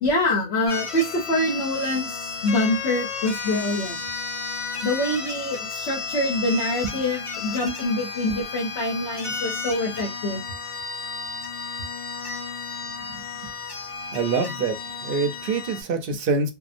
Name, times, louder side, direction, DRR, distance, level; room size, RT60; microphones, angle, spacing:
voice 1, 0.0-4.0 4.8-10.4, left 1 dB, 70° left, 1.0 m, -25 dB
sound 1, 0.7-15.8, left 5 dB, 45° left, 0.4 m, -33 dB
voice 2, 13.1-13.5 14.1-16.5, right 4 dB, 60° right, 0.6 m, -26 dB
2.7 x 2.0 x 2.4 m
omnidirectional pair, 1.2 m